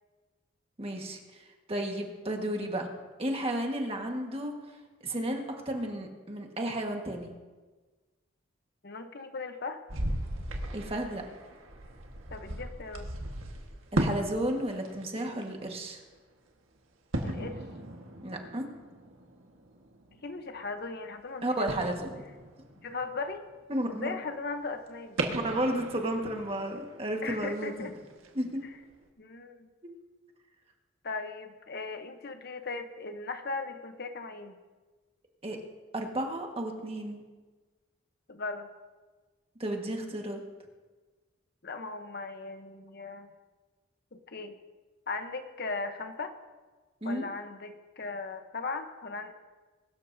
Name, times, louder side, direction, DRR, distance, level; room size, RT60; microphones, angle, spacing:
voice 1, 0.8-1.4 1.7-2.9 3.2-4.5 5.0-7.3 10.7-11.2 13.9-16.0 18.2-18.6 21.4-22.1 23.7-24.1 25.3-27.7 28.4-28.6 29.8-29.9 35.4-35.6 35.9-37.2 39.6-40.4 47.0-47.3, right 1 dB, 30° right, 2 dB, 1.6 m, -32 dB
voice 2, 8.8-9.8 12.3-13.1 17.2-17.6 20.1-22.0 22.8-23.4 23.9-25.2 27.2-27.9 28.6-28.7 29.2-29.7 31.0-34.6 38.3-38.7 41.6-43.3 44.1-44.6 45.1-46.3 47.0-49.3, left 3 dB, 50° left, 7 dB, 0.9 m, -38 dB
sound 1, 9.9-14.3 14.6-15.6 17.1-21.2 21.7-23.6 24.0-24.1 25.2-28.4 28.9-29.0, right 1 dB, 90° right, 1.6 m, -37 dB
22.0 x 12.5 x 2.7 m, 1.3 s
head